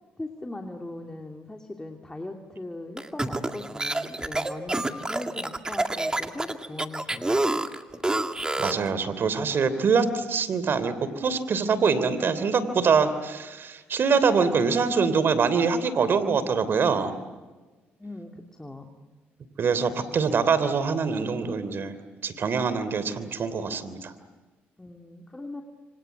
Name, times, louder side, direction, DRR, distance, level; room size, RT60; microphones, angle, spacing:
voice 1, 0.2-7.6 7.9-8.1 18.0-18.9 24.8-25.6, left 2 dB, 15° left, 2 dB, 2.8 m, -39 dB
sound 1, 3.0-8.9, right 2 dB, 15° right, 2.1 m, -28 dB
voice 2, 8.6-17.2 19.6-21.9 22.2-24.1, right 5 dB, 55° right, 14 dB, 3.1 m, -24 dB
27.5 x 25.5 x 8.3 m, 1.3 s
supercardioid pair, 65°, 4 cm